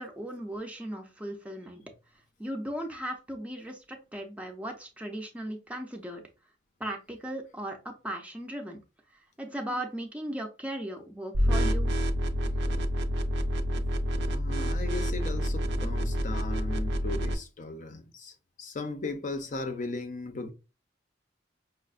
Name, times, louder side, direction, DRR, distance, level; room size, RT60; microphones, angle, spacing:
voice 1, 0.0-1.8 2.4-6.2 6.8-8.8 9.4-11.9 12.7-12.8, right 1 dB, 10° right, 0.5 m, -37 dB
sound 1, 11.3-17.3, equal, 65° right, 0.4 m, -28 dB
voice 2, 14.3-20.5, left 2 dB, 45° left, 0.5 m, -37 dB
5.3 x 2.0 x 2.4 m
head